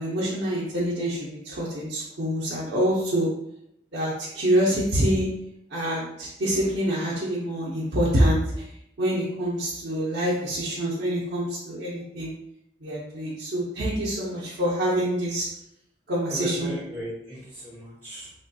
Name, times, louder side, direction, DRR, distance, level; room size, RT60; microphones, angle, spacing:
voice 1, 0.0-3.3 3.9-5.3 5.7-8.6 9.0-12.3 12.8-15.5 16.1-16.7, equal, 60° right, -6 dB, 0.6 m, -26 dB
voice 2, 16.3-18.3, equal, 10° right, -6 dB, 0.5 m, -37 dB
3.4 x 2.2 x 2.6 m, 0.80 s
head